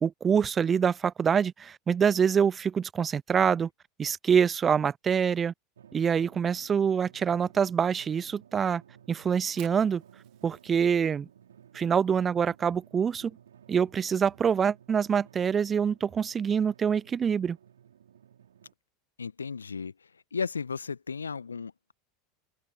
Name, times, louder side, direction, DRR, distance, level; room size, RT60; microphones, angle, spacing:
voice 1, 0.0-3.7 4.0-5.5 5.9-8.8 9.1-10.0 10.4-11.3 11.7-13.3 13.7-17.6, right 7 dB, 25° right, 0.4 m, -25 dB
Drum, 5.8-18.7, right 9 dB, 70° right, 6.4 m, -56 dB
Fire, 9.5-15.5, right 25 dB, 50° right, 3.4 m, -59 dB
voice 2, 19.2-21.9, left 5 dB, 80° left, 1.3 m, -35 dB
open air
figure-of-eight pair, 80°, 0 cm